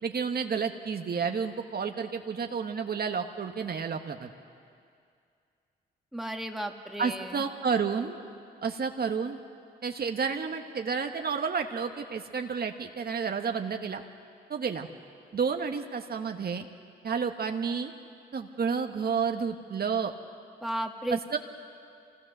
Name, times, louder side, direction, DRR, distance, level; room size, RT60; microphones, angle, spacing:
voice 1, 0.0-4.3 7.0-8.2 8.6-9.4 9.8-14.0 14.5-14.9 15.3-16.7 17.0-17.9 18.3-20.1 21.1-21.4, right 6 dB, 55° right, 5 dB, 1.2 m, -30 dB
voice 2, 6.1-7.4 20.6-21.2, right 1 dB, ahead, 3 dB, 1.9 m, -34 dB
25.0 x 17.5 x 6.7 m, 2.4 s
supercardioid pair, 50°, 19 cm